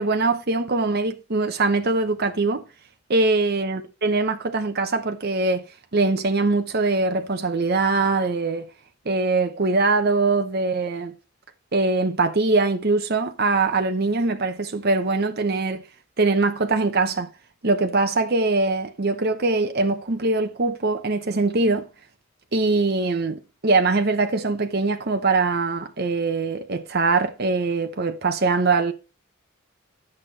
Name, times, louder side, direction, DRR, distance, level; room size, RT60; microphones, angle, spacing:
voice 1, 0.0-2.6 3.1-5.7 5.9-8.7 9.0-11.1 11.7-15.8 16.2-17.3 17.6-21.9 22.5-28.9, right 3 dB, 50° right, 0.9 m, -22 dB
9.8 x 6.4 x 4.2 m
head